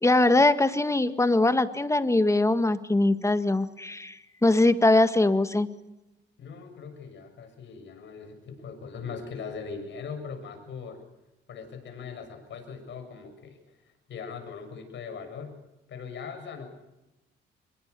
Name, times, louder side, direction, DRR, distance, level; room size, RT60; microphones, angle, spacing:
voice 1, 0.0-5.7, left 2 dB, 15° left, 10 dB, 1.8 m, -22 dB
voice 2, 6.4-11.0 11.5-15.6 15.9-16.7, left 5 dB, 65° left, 6 dB, 7.2 m, -40 dB
25.5 x 22.0 x 7.0 m, 0.98 s
cardioid pair, 90°, 20 cm